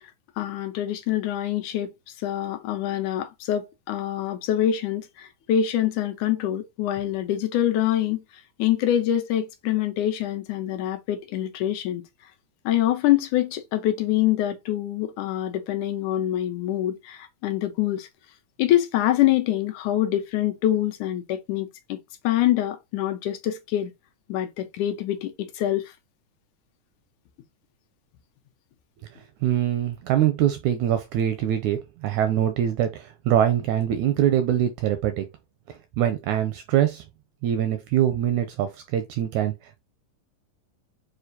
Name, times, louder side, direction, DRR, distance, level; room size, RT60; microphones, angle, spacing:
voice 1, 0.4-1.9 2.2-8.2 8.6-12.0 12.7-18.1 18.6-22.0 22.2-23.9 24.3-25.9, left 12 dB, 80° left, 1.8 m, -25 dB
voice 2, 29.4-35.2 36.0-37.0 37.4-39.5, right 11 dB, 80° right, 1.7 m, -23 dB
6.5 x 2.3 x 2.7 m
omnidirectional pair, 3.8 m